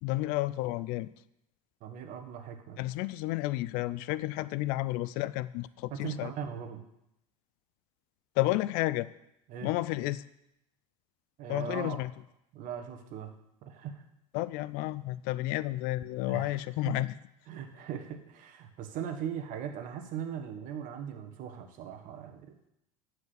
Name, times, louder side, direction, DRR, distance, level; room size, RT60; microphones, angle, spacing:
voice 1, 0.0-1.1 2.8-6.3 8.4-9.1 9.6-10.2 11.5-12.1 14.3-17.1, left 17 dB, 60° left, 18 dB, 0.4 m, -31 dB
voice 2, 1.8-2.8 5.9-6.8 9.5-9.7 11.4-12.0 12.5-13.3 13.6-14.0 16.2-17.0 17.5-22.6, right 8 dB, 55° right, 6 dB, 1.4 m, -39 dB
9.5 x 4.8 x 6.5 m, 0.81 s
supercardioid pair, 100°, 17 cm